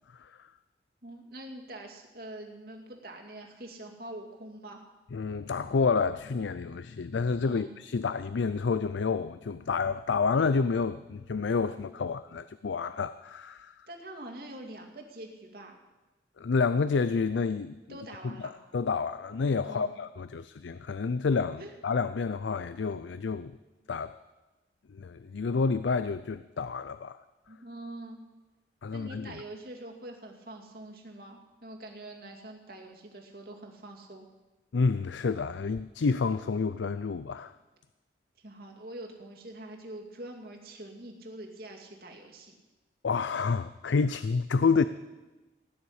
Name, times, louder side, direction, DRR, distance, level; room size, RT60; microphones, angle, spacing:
voice 1, 0.1-0.5 5.1-13.9 16.4-17.8 18.4-23.6 23.9-24.2 24.9-27.2 28.8-29.4 34.7-37.5 43.0-44.8, left 4 dB, 85° left, 14 dB, 0.5 m, -29 dB
voice 2, 1.0-4.8 7.5-7.8 13.9-15.8 17.9-18.5 19.6-19.9 21.6-21.8 27.5-28.2 28.9-34.3 38.4-42.6, right 1 dB, 55° right, 1 dB, 2.3 m, -44 dB
17.5 x 6.9 x 9.8 m, 1.1 s
head